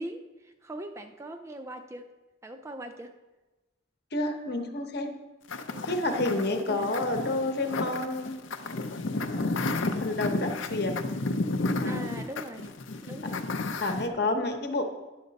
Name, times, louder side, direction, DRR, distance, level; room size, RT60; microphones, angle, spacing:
voice 1, 0.0-2.1 2.4-3.2 5.7-7.0 11.8-12.7 13.0-13.4 13.8-14.4, right 1 dB, 15° right, 7 dB, 0.3 m, -41 dB
voice 2, 4.1-5.1 5.8-8.4 9.2-11.0 11.8-12.1 13.8-14.8, left 2 dB, 55° left, 5 dB, 0.9 m, -30 dB
sound 1, 5.5-14.1, left 2 dB, 75° left, 0.6 m, -32 dB
10.5 x 6.5 x 4.0 m, 1.1 s
head